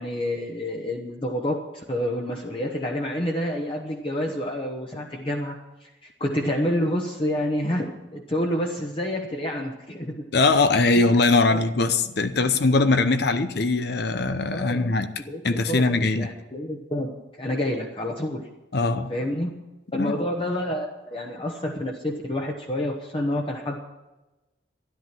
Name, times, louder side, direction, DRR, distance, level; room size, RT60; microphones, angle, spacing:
voice 1, 0.0-10.2 11.5-11.6 14.5-14.9 15.3-18.4 19.1-19.5 19.9-23.8, left 1 dB, 30° left, 1 dB, 1.1 m, -28 dB
voice 2, 10.3-16.3 18.7-19.1 19.9-20.2, left 3 dB, 60° left, 10 dB, 0.8 m, -21 dB
13.0 x 11.0 x 6.0 m, 1.1 s
head